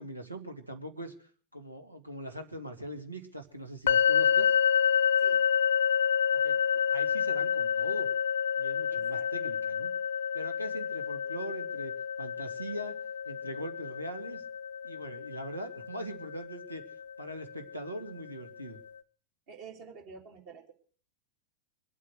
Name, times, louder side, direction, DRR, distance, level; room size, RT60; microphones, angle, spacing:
voice 1, 0.0-4.5 6.3-8.1 8.5-9.9 10.3-11.9 12.2-13.0 13.3-14.4 14.8-16.8 17.2-18.8, right 1 dB, 85° right, 6 dB, 2.0 m, -41 dB
sound 1, 3.9-17.7, left 7 dB, 65° left, 0.7 m, -29 dB
voice 2, 8.9-9.5 19.5-20.7, right 5 dB, 45° right, 3 dB, 3.2 m, -49 dB
23.5 x 8.5 x 6.5 m, 0.43 s
figure-of-eight pair, 90°, 0 cm